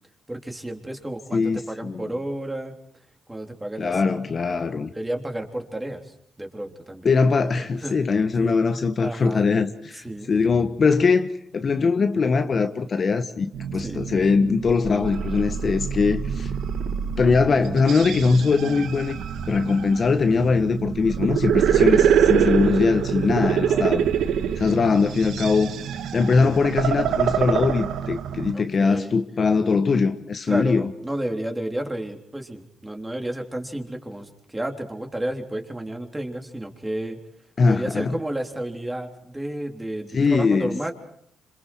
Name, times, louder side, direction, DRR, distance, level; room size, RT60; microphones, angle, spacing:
voice 1, 0.3-2.8 3.3-4.3 4.9-7.1 7.6-8.0 8.4-8.6 9.0-9.5 9.9-10.3 13.8-14.0 23.4-24.1 28.5-29.1 30.5-37.2 37.6-40.9, right 1 dB, 10° right, 3.6 m, -32 dB
voice 2, 1.3-2.0 3.8-4.9 7.0-16.5 17.2-19.2 19.5-24.0 24.6-25.7 26.1-30.9 37.6-38.1 40.1-40.7, left 4 dB, 40° left, 1.3 m, -21 dB
sound 1, 13.5-28.5, right 8 dB, 75° right, 1.6 m, -25 dB
27.0 x 26.5 x 4.6 m
cardioid pair, 90°, 0 cm